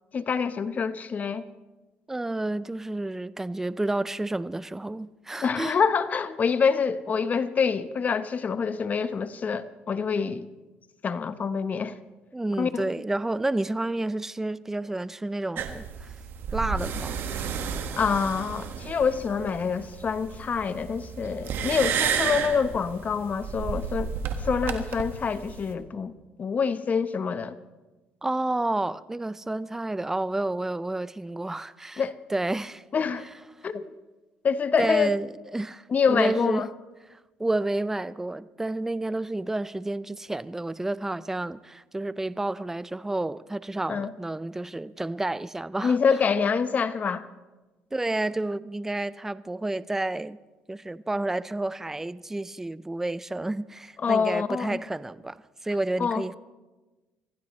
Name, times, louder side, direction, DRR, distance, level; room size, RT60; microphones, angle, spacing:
voice 1, 0.1-1.4 5.4-10.5 11.0-12.0 12.6-12.9 18.0-24.1 24.4-26.1 26.4-27.6 32.0-32.2 32.9-33.3 33.6-33.9 34.4-35.1 35.9-36.7 43.9-44.1 45.8-47.2 54.0-54.8 56.0-56.2, left 6 dB, 40° left, 0.9 m, -26 dB
voice 2, 2.1-5.8 12.3-16.1 16.5-17.2 28.2-32.0 32.3-32.8 34.8-36.7 37.1-46.0 47.9-50.4 50.7-55.4 55.6-56.4, right 2 dB, 10° right, 0.5 m, -30 dB
sound 1, 15.6-25.7, right 7 dB, 65° right, 1.6 m, -32 dB
26.0 x 15.5 x 3.2 m
supercardioid pair, 85°, 4 cm